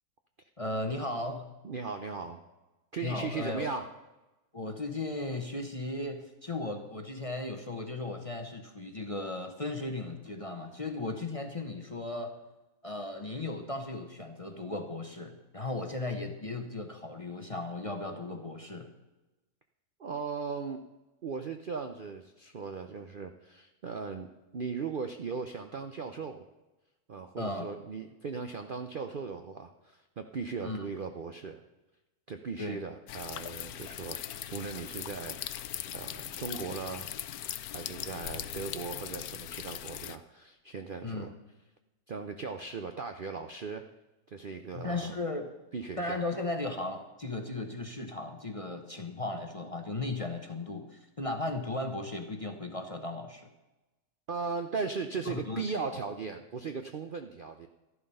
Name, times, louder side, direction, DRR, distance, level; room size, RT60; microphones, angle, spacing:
voice 1, 0.6-1.5 3.0-3.7 4.5-12.3 12.8-18.9 27.4-27.7 30.6-30.9 32.6-32.8 41.0-41.3 44.7-45.5 46.0-53.5 55.3-55.6, left 2 dB, 25° left, 5 dB, 0.9 m, -36 dB
voice 2, 1.6-2.4 2.9-3.9 20.0-20.8 21.2-24.3 24.5-26.5 27.1-31.6 32.3-35.4 35.9-37.1 37.7-41.3 42.1-43.8 44.3-45.2 45.7-46.2 54.3-57.7, right 5 dB, 50° right, 6 dB, 0.6 m, -38 dB
sound 1, 33.1-40.2, left 11 dB, 75° left, 1.1 m, -40 dB
13.0 x 11.0 x 5.5 m, 1.1 s
omnidirectional pair, 1.6 m